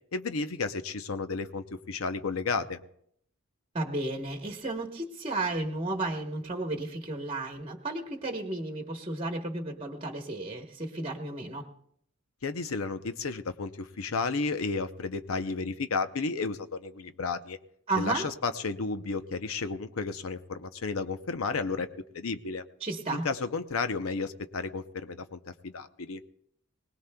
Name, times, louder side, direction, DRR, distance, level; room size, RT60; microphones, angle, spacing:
voice 1, 0.1-2.8 12.4-17.6 18.0-21.9 22.1-22.6 23.1-26.2, left 4 dB, 80° left, 10 dB, 0.7 m, -32 dB
voice 2, 3.7-11.7 17.9-18.3 22.8-23.3, right 2 dB, 25° right, 3 dB, 1.1 m, -33 dB
24.0 x 19.0 x 2.3 m, 0.70 s
head